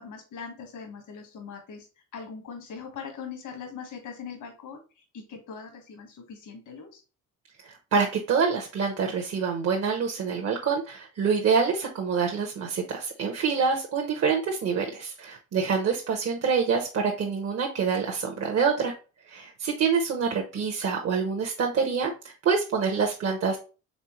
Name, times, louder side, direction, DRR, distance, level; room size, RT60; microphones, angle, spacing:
voice 1, 0.0-1.9 2.1-7.0, left 6 dB, 75° left, 4 dB, 1.3 m, -41 dB
voice 2, 7.6-18.9 19.3-22.1 22.4-23.6, right 5 dB, 55° right, 2 dB, 0.9 m, -26 dB
4.3 x 3.5 x 3.0 m, 0.33 s
cardioid pair, 90°, 30 cm